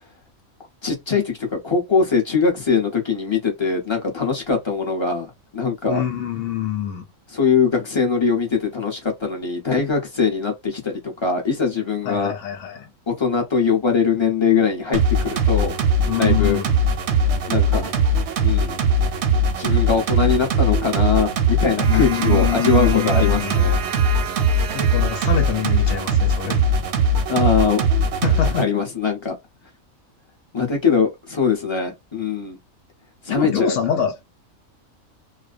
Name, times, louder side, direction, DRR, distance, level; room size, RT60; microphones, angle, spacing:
voice 1, 0.8-6.0 7.3-12.3 13.1-15.8 16.1-16.6 17.5-17.9 18.4-18.8 19.6-23.8 27.3-27.8 28.6-29.4 30.5-32.6 33.2-33.8, left 5 dB, 25° left, 0.7 m, -22 dB
voice 2, 5.9-7.1 12.0-12.9 16.0-16.8 21.9-23.7 24.7-26.7 28.2-28.7 33.3-34.2, left 9 dB, 70° left, 0.9 m, -25 dB
sound 1, 14.9-28.6, right 1 dB, 65° right, 0.8 m, -20 dB
2.4 x 2.1 x 2.4 m
omnidirectional pair, 1.4 m